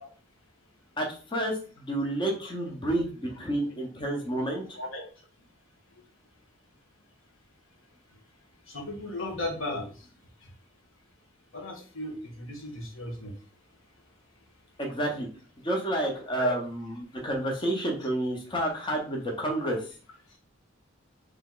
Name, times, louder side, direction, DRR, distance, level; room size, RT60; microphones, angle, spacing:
voice 1, 1.0-4.8 14.8-15.3 15.6-19.8, right 1 dB, 25° left, 0 dB, 0.8 m, -30 dB
voice 2, 8.7-10.1 10.4-10.5 11.5-13.3 16.4-16.5, left 1 dB, 85° left, 1 dB, 1.2 m, -35 dB
3.4 x 2.9 x 3.7 m, 0.39 s
head